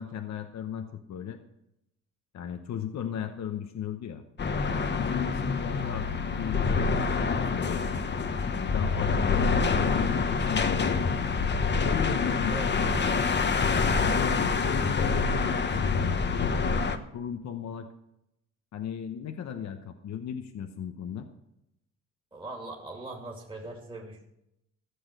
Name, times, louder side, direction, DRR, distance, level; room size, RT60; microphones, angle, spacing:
voice 1, 0.0-1.4 2.3-4.2 4.8-8.0 8.5-11.0 11.8-12.5 12.9-13.5 13.9-17.9 18.7-21.3, left 8 dB, 65° left, 7 dB, 1.0 m, -36 dB
sound 1, 4.4-17.0, left 4 dB, 35° left, 1.0 m, -26 dB
voice 2, 22.3-24.2, right 2 dB, 15° right, -2 dB, 2.5 m, -40 dB
15.0 x 7.0 x 6.6 m, 0.83 s
cardioid pair, 90°, 30 cm